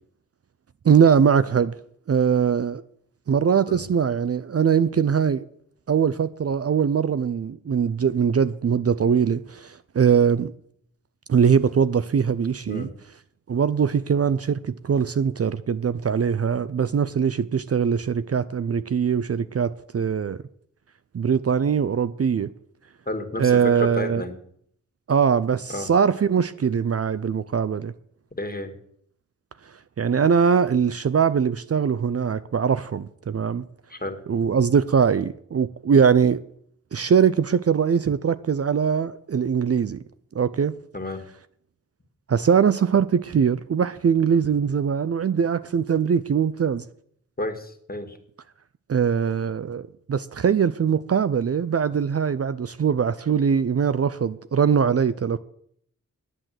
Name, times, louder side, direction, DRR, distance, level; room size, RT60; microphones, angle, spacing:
voice 1, 0.8-1.7 2.1-2.8 3.3-5.5 5.9-10.5 11.3-12.9 13.5-20.4 21.1-22.5 23.4-24.2 25.1-27.9 30.0-33.6 34.3-36.4 36.9-40.0 40.3-40.7 42.3-46.8 48.9-55.4, right 7 dB, 45° right, 0.5 m, -21 dB
voice 2, 23.1-24.4 25.7-25.9 28.4-28.7 33.9-34.2 40.9-41.2 47.4-48.2, left 1 dB, 30° left, 2.0 m, -31 dB
9.8 x 8.9 x 7.6 m
cardioid pair, 55°, 33 cm